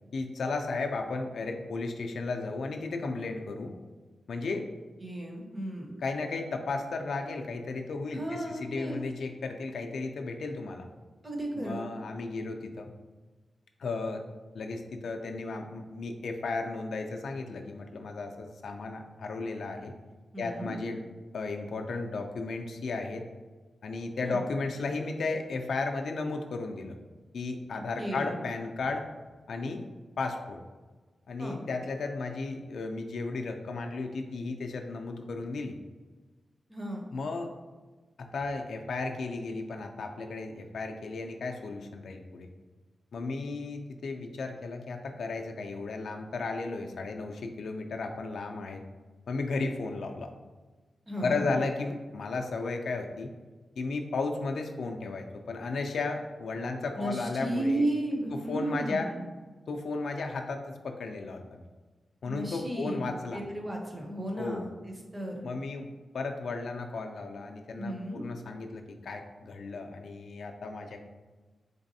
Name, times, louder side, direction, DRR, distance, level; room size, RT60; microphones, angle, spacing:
voice 1, 0.1-3.7 4.3-4.7 6.0-10.9 11.5-12.9 13.8-14.2 14.5-19.9 20.4-21.0 21.3-23.3 23.8-26.9 27.3-29.1 29.5-29.8 30.2-30.6 31.3-35.8 37.1-37.5 38.2-42.5 43.1-48.8 49.3-50.3 51.2-53.3 53.8-57.8 58.3-59.1 59.7-61.6 62.2-63.4 64.3-64.7 65.4-71.0, left 3 dB, 75° left, 3 dB, 0.3 m, -34 dB
voice 2, 5.0-5.9 8.1-9.0 11.2-11.8 20.3-20.7 24.2-24.4 28.0-28.3 31.4-31.6 36.7-37.0 51.1-51.5 57.0-59.2 62.2-64.7 65.1-65.4 67.8-68.2, right 1 dB, 20° right, 0 dB, 0.6 m, -34 dB
3.9 x 3.3 x 2.6 m, 1.3 s
wide cardioid pair, 145°, 0 cm